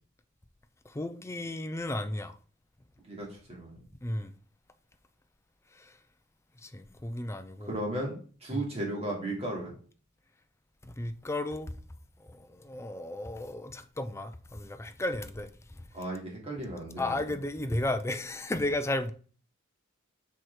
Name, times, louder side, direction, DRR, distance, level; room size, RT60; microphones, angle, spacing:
voice 1, 0.9-2.4 3.8-4.3 5.7-6.0 6.6-7.7 8.5-8.6 10.8-11.7 12.2-15.8 17.0-19.1, left 1 dB, 15° left, 0.5 m, -34 dB
voice 2, 3.1-3.8 7.6-9.7 15.9-17.1, right 1 dB, 30° right, 2.7 m, -35 dB
6.0 x 4.6 x 4.7 m
head